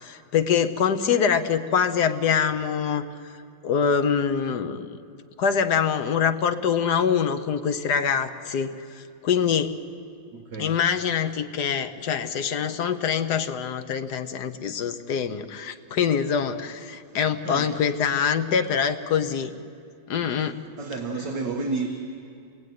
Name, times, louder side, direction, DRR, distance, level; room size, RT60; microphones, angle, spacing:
voice 1, 0.0-3.0 3.6-5.0 5.4-9.8 10.6-19.5 20.1-20.6, left 7 dB, 60° left, 9 dB, 1.5 m, -24 dB
voice 2, 10.3-10.7 17.4-17.7 20.8-22.0, right 3 dB, 60° right, 2 dB, 2.2 m, -30 dB
28.5 x 20.5 x 9.5 m, 2.4 s
omnidirectional pair, 2.2 m